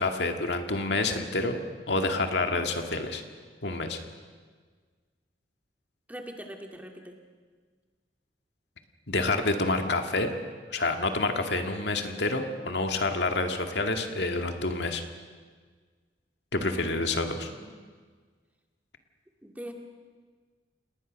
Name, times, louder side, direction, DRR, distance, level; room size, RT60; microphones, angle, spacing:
voice 1, 0.0-3.2 3.6-4.0 9.1-10.3 10.7-15.0 16.5-17.5, left 2 dB, 70° left, 5 dB, 2.0 m, -28 dB
voice 2, 6.1-7.2 16.6-17.0 17.3-17.7 19.4-19.7, equal, 10° right, 3 dB, 2.1 m, -42 dB
29.5 x 19.5 x 6.4 m, 1.6 s
head